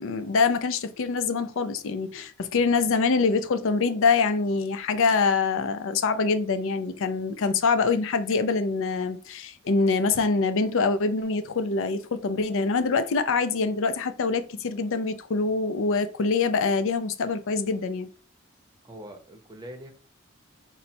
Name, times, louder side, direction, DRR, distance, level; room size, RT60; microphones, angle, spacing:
voice 1, 0.0-18.1, left 4 dB, 60° left, 0.4 m, -25 dB
voice 2, 18.8-19.9, equal, 20° right, 0.7 m, -42 dB
4.0 x 2.1 x 4.3 m
head